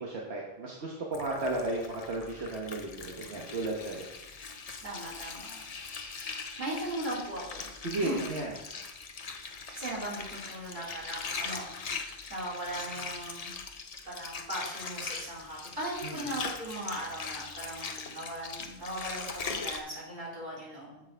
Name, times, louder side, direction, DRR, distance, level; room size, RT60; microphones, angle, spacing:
voice 1, 0.0-4.1 7.8-8.5 16.0-16.2, right 2 dB, 80° right, -2 dB, 1.4 m, -34 dB
Water, 1.1-19.8, left 5 dB, 40° left, 0.7 m, -41 dB
voice 2, 4.8-5.6 6.6-7.7 8.0-8.2 9.7-13.6 14.0-21.0, right 1 dB, 50° right, -6 dB, 3.0 m, -38 dB
7.5 x 6.0 x 4.4 m, 0.92 s
omnidirectional pair, 1.1 m